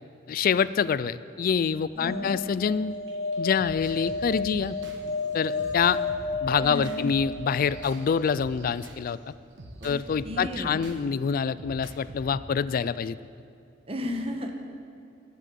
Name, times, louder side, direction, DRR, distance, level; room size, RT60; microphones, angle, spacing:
voice 1, 0.3-2.9 3.4-4.8 5.3-6.0 6.4-9.2 9.8-13.2, left 6 dB, 50° left, 17 dB, 0.3 m, -26 dB
voice 2, 1.9-2.3 6.6-7.1 9.8-9.9 10.2-10.8 13.9-14.6, left 1 dB, 30° right, 3 dB, 1.1 m, -33 dB
sound 1, 2.0-8.1 10.4-10.5 10.7-10.8, left 3 dB, 35° left, 3.0 m, -33 dB
sound 2, 3.1-9.1 9.6-11.0 11.6-12.4, right 1 dB, 70° right, 1.3 m, -45 dB
11.5 x 7.6 x 8.5 m, 2.5 s
head